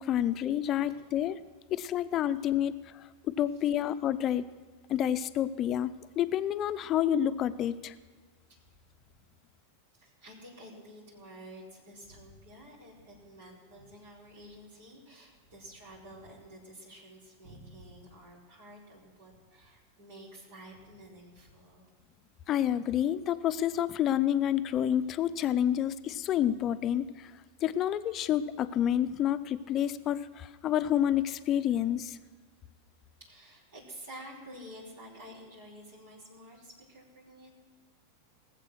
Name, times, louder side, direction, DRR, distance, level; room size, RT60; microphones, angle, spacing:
voice 1, 0.0-1.4 1.7-2.7 3.4-4.5 4.9-5.9 6.2-7.9 22.5-27.3 27.6-32.2, left 10 dB, 40° left, 13 dB, 0.6 m, -28 dB
voice 2, 0.6-1.0 2.5-2.6 3.5-3.7 10.0-21.9 33.2-37.5, equal, 75° right, -6 dB, 4.3 m, -50 dB
19.0 x 7.6 x 6.3 m, 1.4 s
hypercardioid pair, 95°, 0 cm